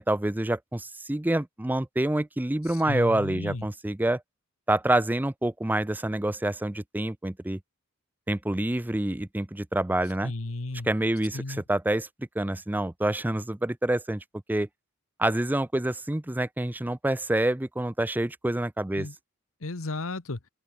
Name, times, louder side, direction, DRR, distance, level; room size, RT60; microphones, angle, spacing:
voice 1, 0.0-4.2 4.7-7.6 8.3-10.3 10.8-14.7 15.2-19.1, right 1 dB, 10° right, 0.5 m, -27 dB
voice 2, 2.6-3.6 10.2-10.9 11.3-11.6 18.9-19.1 19.6-20.4, left 2 dB, 65° left, 1.2 m, -34 dB
open air
head